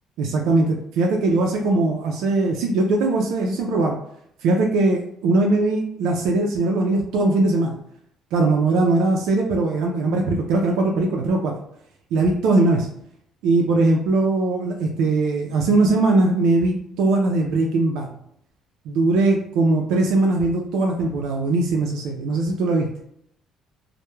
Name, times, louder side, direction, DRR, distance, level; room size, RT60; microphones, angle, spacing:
voice 1, 0.2-4.0 4.4-7.8 8.3-11.6 12.1-12.9 13.4-18.1 18.9-22.9, right 2 dB, 85° right, 1 dB, 0.4 m, -20 dB
2.2 x 2.0 x 3.0 m, 0.71 s
cardioid pair, 135°, 0 cm